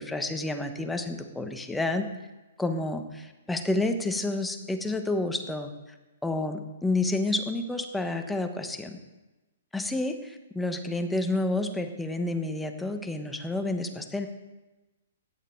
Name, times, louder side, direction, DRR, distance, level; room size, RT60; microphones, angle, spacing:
voice 1, 0.0-2.1 2.6-5.7 6.2-9.0 9.7-14.3, left 2 dB, 5° left, 6 dB, 1.1 m, -29 dB
16.5 x 9.2 x 4.6 m, 1.1 s
hypercardioid pair, 150°, 0 cm